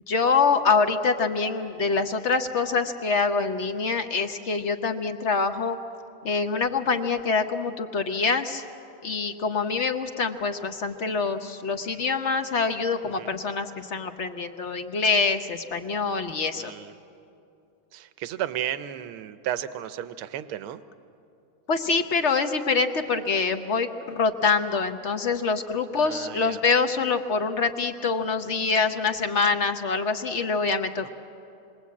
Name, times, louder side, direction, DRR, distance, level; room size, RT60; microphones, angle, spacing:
voice 1, 0.1-5.8 6.2-8.7 9.0-16.7 21.7-31.1, left 4 dB, 50° left, 8 dB, 0.8 m, -25 dB
voice 2, 16.5-16.9 17.9-20.8 26.0-26.6 31.0-31.1, right 11 dB, 90° right, 12 dB, 1.7 m, -34 dB
27.0 x 21.5 x 8.5 m, 2.7 s
omnidirectional pair, 2.3 m